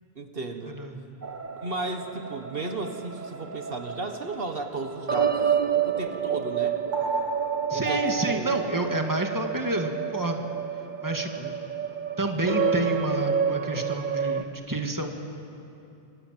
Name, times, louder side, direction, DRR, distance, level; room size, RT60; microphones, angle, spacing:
voice 1, 0.2-0.8 1.6-6.8 7.7-8.8, right 3 dB, 65° right, 5 dB, 1.8 m, -35 dB
sound 1, 1.2-14.4, right 7 dB, 50° right, 1.2 m, -29 dB
voice 2, 7.7-10.5 11.0-11.6 12.2-15.1, right 1 dB, 20° right, 3 dB, 2.0 m, -29 dB
29.5 x 26.0 x 7.6 m, 2.8 s
omnidirectional pair, 1.0 m